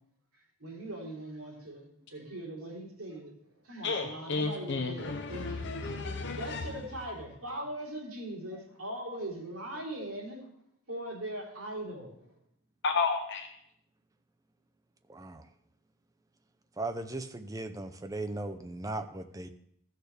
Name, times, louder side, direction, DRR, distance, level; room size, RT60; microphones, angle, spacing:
voice 1, 0.6-3.3 3.6-5.7 6.3-10.4 10.9-12.2, right 1 dB, 70° right, -5 dB, 3.5 m, -40 dB
voice 2, 3.8-6.7 12.8-13.5, left 4 dB, 55° left, 4 dB, 0.7 m, -32 dB
voice 3, 15.1-15.4 16.8-19.5, right 2 dB, 15° right, 7 dB, 0.5 m, -37 dB
14.5 x 6.6 x 3.3 m, 0.71 s
head